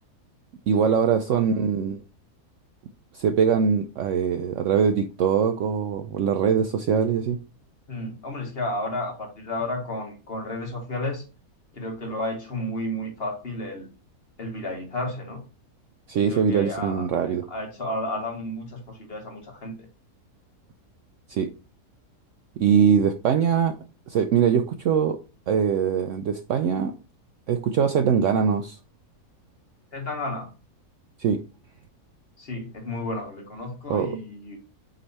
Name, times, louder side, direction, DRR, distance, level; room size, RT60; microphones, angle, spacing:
voice 1, 0.7-2.0 3.1-7.4 16.1-17.4 21.3-21.5 22.6-23.7 24.1-25.2 25.5-26.9 27.5-28.8 31.2-31.4 33.9-34.2, right 7 dB, 70° right, 0.7 m, -22 dB
voice 2, 7.9-11.2 11.7-13.9 14.4-15.4 16.3-19.8 29.9-30.5 32.4-34.6, left 1 dB, 40° left, 1.6 m, -32 dB
7.9 x 3.2 x 4.1 m
omnidirectional pair, 1.7 m